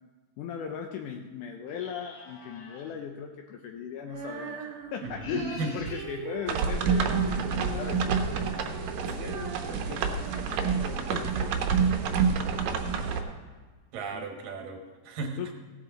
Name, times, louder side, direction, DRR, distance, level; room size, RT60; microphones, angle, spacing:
voice 1, 0.4-13.4 14.1-14.3 15.4-15.5, left 7 dB, 75° left, 3 dB, 2.1 m, -39 dB
sound 1, 1.7-2.9 5.0-6.1, left 3 dB, 55° left, 1.2 m, -47 dB
Female singing, 4.0-11.1, right 5 dB, 55° right, 1.7 m, -41 dB
voice 2, 5.0-5.7 9.0-9.4 13.9-15.4, right 3 dB, 85° right, 3 dB, 3.1 m, -36 dB
sound 2, 6.5-13.2, right 6 dB, 70° right, 2.1 m, -28 dB
16.5 x 8.6 x 3.9 m, 1.4 s
omnidirectional pair, 3.8 m